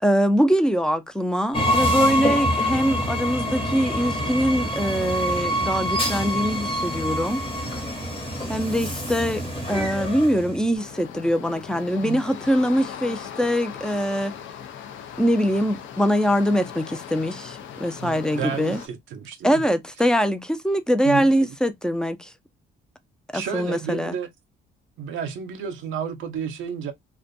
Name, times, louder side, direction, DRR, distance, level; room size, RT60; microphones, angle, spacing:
voice 1, 0.0-7.4 8.5-9.4 9.7-14.3 15.2-18.8 19.4-22.3 23.3-24.1, equal, 5° left, 0.4 m, -23 dB
Train, 1.5-10.7, equal, 25° left, 1.0 m, -26 dB
sound 1, 10.7-18.9, left 8 dB, 75° left, 0.5 m, -39 dB
voice 2, 18.0-19.6 21.0-21.5 23.3-24.3 25.0-26.9, right 7 dB, 80° right, 0.6 m, -31 dB
2.4 x 2.2 x 2.5 m
cardioid pair, 90°, 20 cm